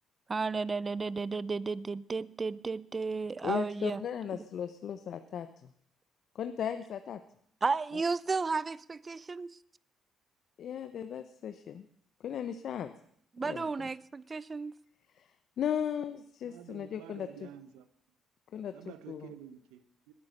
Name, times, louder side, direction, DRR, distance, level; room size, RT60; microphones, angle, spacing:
voice 1, 0.3-4.0 4.3-4.4 7.6-9.6 13.3-14.8, right 4 dB, 35° right, 20 dB, 0.7 m, -33 dB
voice 2, 3.4-5.5 6.3-7.2 10.6-11.9 12.2-12.9 13.4-13.9 15.2-15.3 15.6-17.3 18.5-18.7 19.1-19.3, left 9 dB, 65° left, 10 dB, 0.9 m, -36 dB
voice 3, 16.4-17.9 18.7-20.1, right 10 dB, 85° right, 12 dB, 1.2 m, -50 dB
20.0 x 9.6 x 6.7 m, 0.68 s
supercardioid pair, 65°, 0 cm